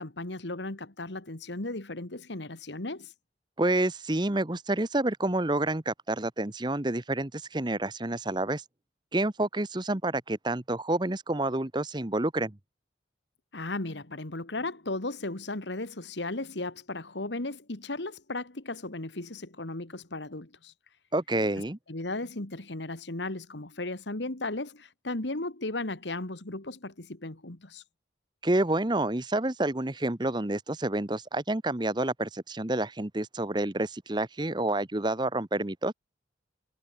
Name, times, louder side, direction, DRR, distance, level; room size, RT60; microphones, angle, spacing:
voice 1, 0.0-3.1 13.5-20.7 21.9-27.8, left 2 dB, 80° left, 2.1 m, -36 dB
voice 2, 3.6-8.6 9.1-12.6 21.1-21.8 28.4-35.9, right 2 dB, 25° right, 1.0 m, -28 dB
head